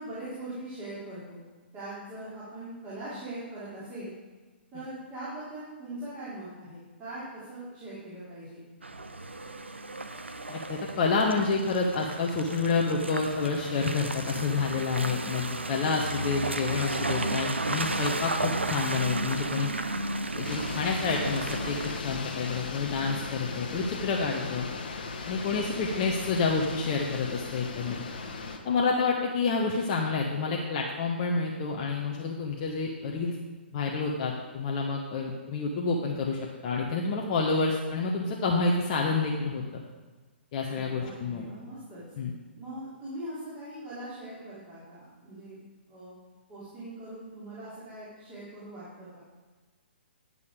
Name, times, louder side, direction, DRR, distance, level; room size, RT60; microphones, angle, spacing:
voice 1, 0.0-1.4 1.7-4.1 4.7-8.6 40.7-42.0 42.5-45.6 45.9-46.1 46.5-49.2, right 1 dB, 20° right, -11 dB, 3.3 m, -41 dB
Car passing by / Engine, 8.8-22.0, right 2 dB, 80° right, 0.7 m, -33 dB
voice 2, 10.5-19.7 20.3-24.7 25.3-28.0 28.6-33.4 33.7-39.8 40.5-41.4 42.2-42.3, left 4 dB, 35° left, -1 dB, 1.0 m, -29 dB
sound 1, 20.4-28.6, left 4 dB, 50° left, 1.3 m, -37 dB
10.5 x 6.8 x 5.0 m, 1.3 s
figure-of-eight pair, 125°, 6 cm